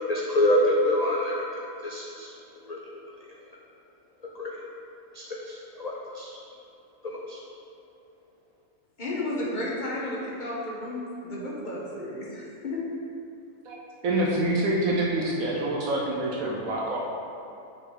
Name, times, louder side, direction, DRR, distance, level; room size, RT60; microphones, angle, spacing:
voice 1, 0.1-1.4 1.8-2.3 2.7-2.8 4.4-4.5 5.1-6.4 7.0-7.4, left 1 dB, 75° left, -4 dB, 0.3 m, -26 dB
voice 2, 9.0-12.8, left 1 dB, 35° left, -5 dB, 1.1 m, -33 dB
voice 3, 14.0-17.0, right 1 dB, 70° right, -3 dB, 1.2 m, -26 dB
6.0 x 5.4 x 3.8 m, 2.6 s
omnidirectional pair, 1.6 m